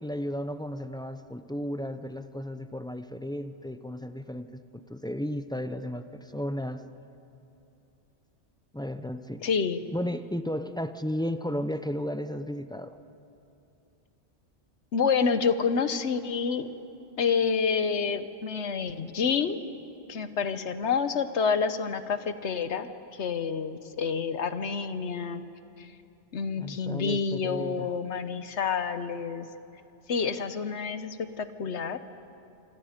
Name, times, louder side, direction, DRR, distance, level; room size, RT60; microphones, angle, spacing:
voice 1, 0.0-6.9 8.7-9.5 9.9-13.0 26.6-27.9, equal, 5° left, 10 dB, 0.4 m, -34 dB
voice 2, 9.4-9.8 14.9-16.7 17.2-19.6 20.1-22.9 23.2-25.4 25.8-25.9 26.3-29.5 30.1-32.0, left 5 dB, 70° left, 11 dB, 1.2 m, -28 dB
27.5 x 25.5 x 5.1 m, 2.8 s
omnidirectional pair, 1.2 m